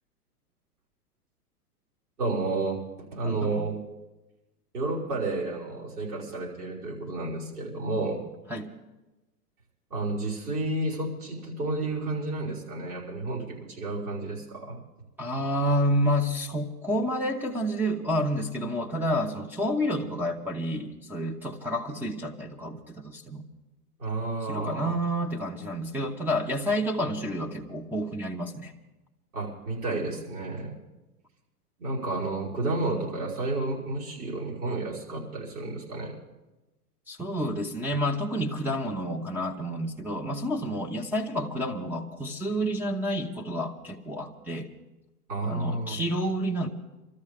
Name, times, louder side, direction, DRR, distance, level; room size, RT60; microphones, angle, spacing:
voice 1, 2.2-2.8 3.1-3.8 4.7-8.2 9.9-14.8 24.0-25.0 29.3-30.7 31.8-36.2 45.3-46.0, right 2 dB, 75° right, -5 dB, 5.6 m, -31 dB
voice 2, 3.2-3.7 8.5-8.7 15.2-23.4 24.5-28.7 37.1-44.7 45.4-46.7, equal, 5° right, 1 dB, 1.0 m, -29 dB
25.0 x 13.0 x 3.7 m, 1.1 s
figure-of-eight pair, 100°, 46 cm